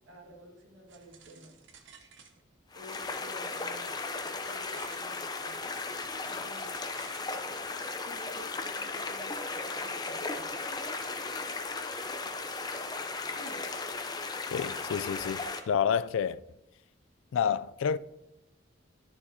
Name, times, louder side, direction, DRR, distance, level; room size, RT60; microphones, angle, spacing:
voice 1, 0.1-1.6 2.7-5.8 6.3-6.8 8.0-10.6 13.2-13.6, equal, 80° right, 1.8 m, -51 dB
sound 1, 0.9-2.6 2.9-5.1 5.5-7.3, right 5 dB, 65° right, 0.9 m, -56 dB
sound 2, 2.7-15.6, left 3 dB, 20° left, 0.5 m, -36 dB
voice 2, 14.5-16.4 17.3-18.0, left 7 dB, 75° left, 0.3 m, -29 dB
11.5 x 7.0 x 2.8 m
head